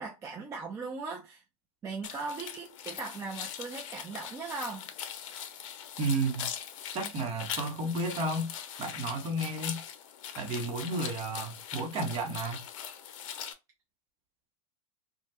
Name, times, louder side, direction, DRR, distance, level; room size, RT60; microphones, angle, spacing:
voice 1, 0.0-1.4 1.8-4.9, right 4 dB, 15° right, 0.5 m, -39 dB
sound 1, 2.0-13.5, left 9 dB, 60° left, 0.6 m, -41 dB
voice 2, 6.0-6.5 6.9-8.5 8.8-9.8 10.3-12.6, right 2 dB, 30° right, 0.9 m, -32 dB
3.1 x 2.2 x 2.9 m
supercardioid pair, 135°, 18 cm